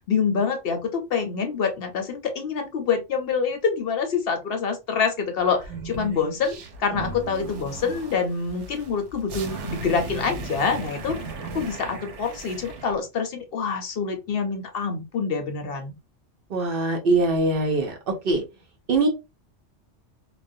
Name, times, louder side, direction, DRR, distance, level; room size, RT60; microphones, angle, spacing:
voice 1, 0.1-11.2 11.5-15.9, left 5 dB, 65° left, 5 dB, 0.7 m, -26 dB
sound 1, 5.5-12.9, right 4 dB, 85° right, 0.9 m, -37 dB
voice 2, 16.5-18.4 18.9-19.1, right 3 dB, 60° right, 2 dB, 0.8 m, -22 dB
2.4 x 2.1 x 2.5 m, 0.25 s
omnidirectional pair, 1.2 m